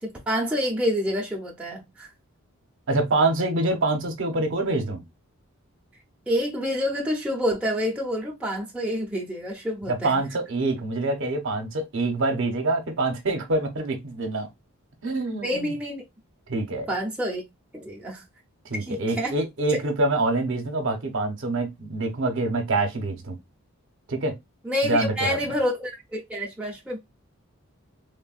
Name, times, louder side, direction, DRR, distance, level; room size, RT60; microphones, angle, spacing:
voice 1, 0.0-2.1 6.3-10.2 15.4-16.0 16.9-17.4 17.7-18.2 18.8-19.4 24.6-27.0, equal, 5° right, 0.5 m, -28 dB
voice 2, 2.9-5.0 9.9-14.5 15.0-15.7 16.5-16.9 18.6-23.3 24.1-24.3 24.8-25.4, right 2 dB, 60° right, 0.7 m, -25 dB
3.3 x 2.1 x 2.3 m
head